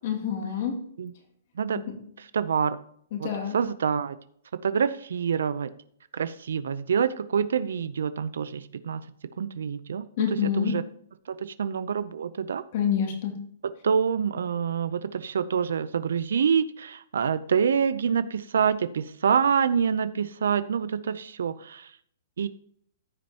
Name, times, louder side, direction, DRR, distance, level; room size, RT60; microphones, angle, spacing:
voice 1, 0.0-0.8 1.7-1.9 3.1-3.6 10.2-10.8 12.7-13.4, left 8 dB, 50° left, 3 dB, 2.4 m, -27 dB
voice 2, 2.2-2.8 3.2-4.2 4.6-5.7 6.1-9.1 9.4-10.1 10.4-10.8 11.3-12.6 13.8-21.9 22.4-22.5, right 7 dB, 85° right, 14 dB, 0.6 m, -26 dB
14.5 x 6.2 x 2.9 m, 0.64 s
hypercardioid pair, 160°, 0 cm